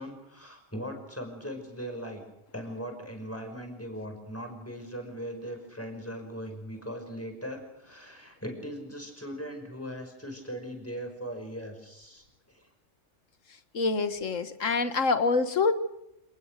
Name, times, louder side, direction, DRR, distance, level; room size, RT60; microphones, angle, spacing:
voice 1, 0.0-2.2 2.5-12.7, equal, 10° left, 4 dB, 5.5 m, -39 dB
voice 2, 13.7-15.7, left 4 dB, 85° left, 11 dB, 1.9 m, -26 dB
27.5 x 19.5 x 6.6 m, 0.84 s
omnidirectional pair, 1.3 m